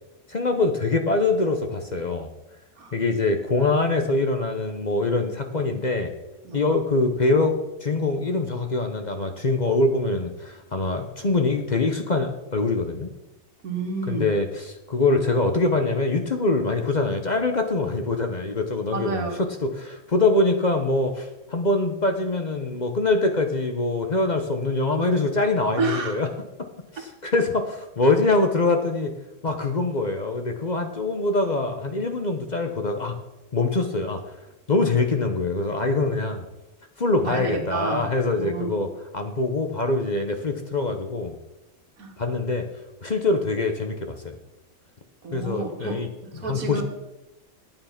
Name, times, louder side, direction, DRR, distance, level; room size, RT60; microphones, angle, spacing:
voice 1, 0.3-2.3 2.9-6.1 6.5-13.1 14.1-19.3 19.6-26.3 26.9-29.1 29.4-33.2 33.5-34.2 34.7-36.5 37.0-38.9 39.1-41.4 42.2-42.7 43.0-44.4 45.3-46.1 46.4-46.8, left 3 dB, 35° left, 6 dB, 0.8 m, -24 dB
voice 2, 13.6-14.3 18.9-19.4 25.8-26.2 37.2-38.1 38.4-38.9 42.0-42.1 45.2-46.8, right 3 dB, 85° right, 4 dB, 2.1 m, -30 dB
9.5 x 8.9 x 5.8 m, 0.96 s
omnidirectional pair, 1.5 m